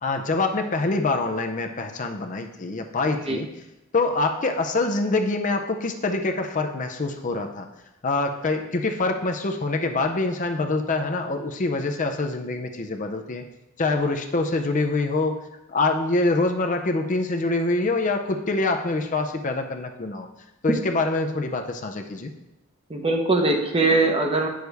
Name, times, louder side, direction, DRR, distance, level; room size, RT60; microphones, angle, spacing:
voice 1, 0.0-3.5 3.9-7.7 8.0-13.4 13.8-15.4 15.7-20.3 20.6-22.3, left 3 dB, 40° left, 5 dB, 0.6 m, -25 dB
voice 2, 22.9-24.5, right 2 dB, 30° right, 3 dB, 0.8 m, -21 dB
8.2 x 6.3 x 3.4 m, 0.91 s
head